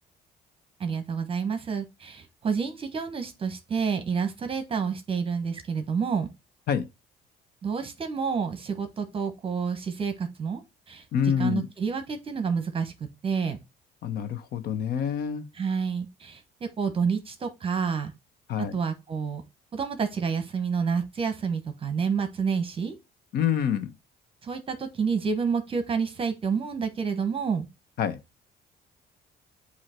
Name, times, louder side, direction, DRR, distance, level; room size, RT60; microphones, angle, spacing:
voice 1, 0.8-6.3 7.6-10.6 10.9-11.0 11.4-12.9 13.2-13.6 15.5-18.1 18.6-19.4 19.7-22.9 24.4-27.7, right 6 dB, 35° right, 1.1 m, -29 dB
voice 2, 11.1-11.7 14.0-15.5 18.5-18.8 23.3-23.9 28.0-28.2, left 8 dB, 65° left, 0.9 m, -26 dB
7.8 x 2.8 x 4.4 m
cardioid pair, 110°, 17 cm